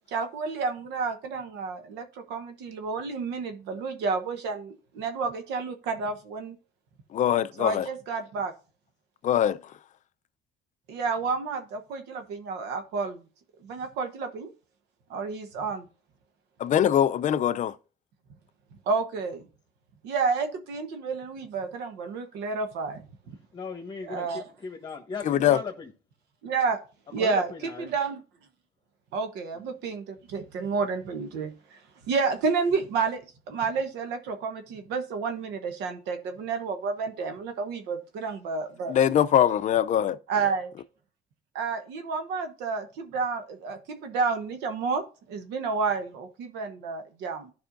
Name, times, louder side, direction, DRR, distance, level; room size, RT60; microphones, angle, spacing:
voice 1, 0.1-6.6 7.6-8.5 10.9-13.2 13.6-14.5 15.1-15.8 18.9-19.5 20.0-23.0 24.0-24.4 26.4-26.8 27.1-28.2 29.1-31.8 32.1-39.0 40.3-40.7 41.5-47.5, right 4 dB, 90° right, 1.1 m, -30 dB
voice 2, 7.1-7.9 9.2-9.6 16.6-17.7 25.3-25.6 38.9-40.2, left 10 dB, 45° left, 0.5 m, -22 dB
voice 3, 23.5-25.9 27.2-27.9 29.5-29.7, left 5 dB, 30° left, 1.4 m, -37 dB
12.5 x 5.4 x 2.5 m
cardioid pair, 110°, 17 cm